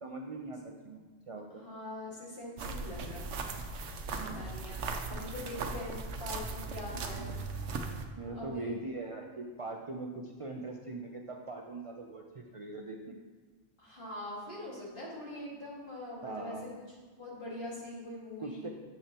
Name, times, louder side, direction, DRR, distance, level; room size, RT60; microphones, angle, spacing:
voice 1, 0.0-1.6 4.1-4.5 6.9-7.3 8.2-13.2 16.2-16.6 18.4-18.7, right 2 dB, 40° right, 2 dB, 0.5 m, -41 dB
voice 2, 1.5-3.3 3.7-7.3 8.2-8.8 13.8-16.7 17.2-18.7, left 1 dB, 45° left, -5 dB, 2.1 m, -43 dB
sound 1, 2.6-8.1, right 4 dB, 85° right, 1.0 m, -38 dB
9.7 x 7.2 x 2.9 m, 1.4 s
omnidirectional pair, 1.2 m